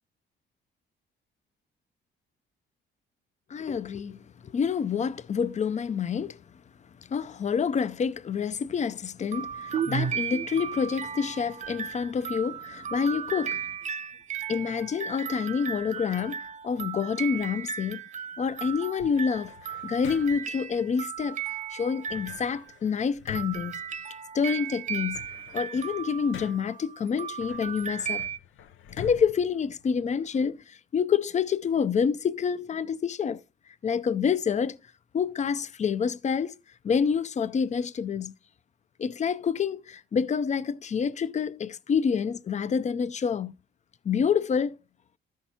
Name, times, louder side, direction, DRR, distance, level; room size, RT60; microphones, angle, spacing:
voice 1, 3.5-6.4 7.1-13.6 14.5-18.0 18.4-19.5 19.8-21.4 21.7-23.8 24.3-25.2 25.5-28.3 28.9-33.4 33.8-34.8 35.1-36.5 36.8-38.3 39.0-43.5 44.0-44.8, left 6 dB, 35° left, 0.5 m, -28 dB
sound 1, 9.3-22.9 23.3-28.4, right 7 dB, 40° right, 0.5 m, -35 dB
sound 2, 19.0-20.6 22.1-24.5 24.9-26.8 27.4-30.4, left 9 dB, 85° left, 0.6 m, -46 dB
13.5 x 5.7 x 2.8 m
cardioid pair, 90°, 20 cm